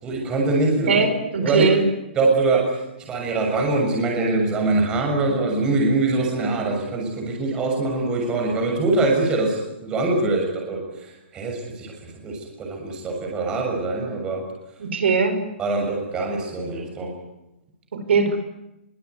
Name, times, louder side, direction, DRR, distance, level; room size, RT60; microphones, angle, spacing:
voice 1, 0.0-1.0 1.3-1.7 2.1-2.7 3.1-11.9 12.2-14.4 15.6-17.1, right 3 dB, 15° right, 0 dB, 6.7 m, -23 dB
voice 2, 0.9-1.8 14.8-15.4 17.9-18.4, right 5 dB, 70° right, 8 dB, 5.6 m, -20 dB
25.5 x 24.0 x 9.6 m, 0.90 s
hypercardioid pair, 175°, 6 cm